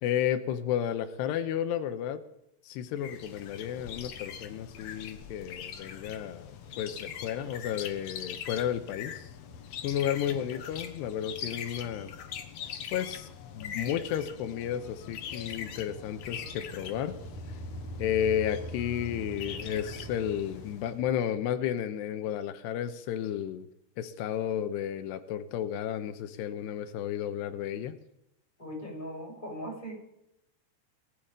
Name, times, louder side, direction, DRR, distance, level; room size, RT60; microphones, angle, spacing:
voice 1, 0.0-2.2 2.6-6.5 6.8-9.3 9.8-12.1 12.9-13.3 13.5-17.2 18.0-23.7 24.0-28.0, left 10 dB, 90° left, 9 dB, 3.1 m, -32 dB
sound 1, 3.0-21.0, left 8 dB, 70° left, 1.5 m, -42 dB
voice 2, 10.3-10.6 28.6-30.0, equal, 10° left, 2 dB, 7.6 m, -40 dB
sound 2, 14.6-21.3, right 2 dB, 75° right, 4.0 m, -44 dB
19.0 x 8.4 x 8.7 m, 0.81 s
omnidirectional pair, 4.8 m